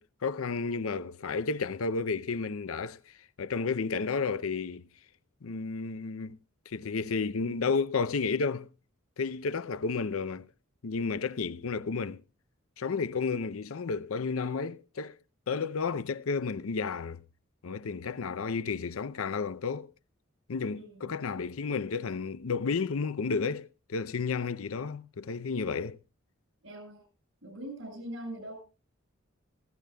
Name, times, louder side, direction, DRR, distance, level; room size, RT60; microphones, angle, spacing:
voice 1, 0.0-4.9 5.4-6.4 6.7-8.7 9.2-10.5 10.8-12.2 12.8-15.2 15.5-17.2 17.6-19.9 20.5-26.0, left 4 dB, 85° left, 0.6 m, -32 dB
voice 2, 20.8-21.1 26.6-27.0 27.4-28.6, right 1 dB, 65° right, 6.3 m, -42 dB
20.0 x 15.0 x 2.3 m
head